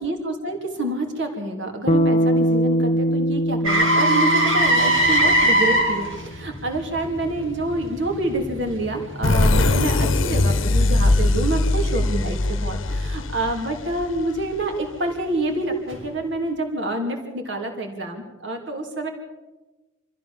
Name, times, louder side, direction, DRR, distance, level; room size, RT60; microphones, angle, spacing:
voice 1, 0.0-19.1, right 2 dB, 60° right, 3 dB, 3.2 m, -27 dB
Bass guitar, 1.9-6.3, equal, 35° left, 0.6 m, -23 dB
Motor vehicle (road), 3.6-11.6 15.9-16.0, right 1 dB, 85° right, 4.9 m, -23 dB
sound 1, 9.2-14.7, left 2 dB, 70° left, 1.0 m, -21 dB
26.0 x 15.0 x 7.1 m, 1.1 s
head